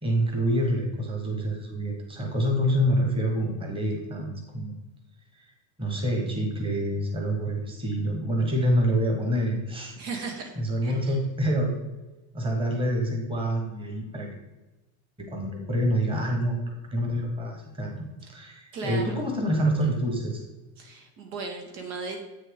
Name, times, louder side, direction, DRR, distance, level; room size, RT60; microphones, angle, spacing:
voice 1, 0.0-4.3 4.5-4.8 5.4-5.5 5.8-9.9 10.5-11.8 12.3-14.3 15.3-20.4, equal, 10° right, 1 dB, 1.3 m, -27 dB
voice 2, 10.0-11.0 18.7-19.2 20.8-22.2, right 4 dB, 90° right, 2 dB, 2.2 m, -36 dB
8.4 x 6.6 x 3.8 m, 1.1 s
cardioid pair, 170°, 44 cm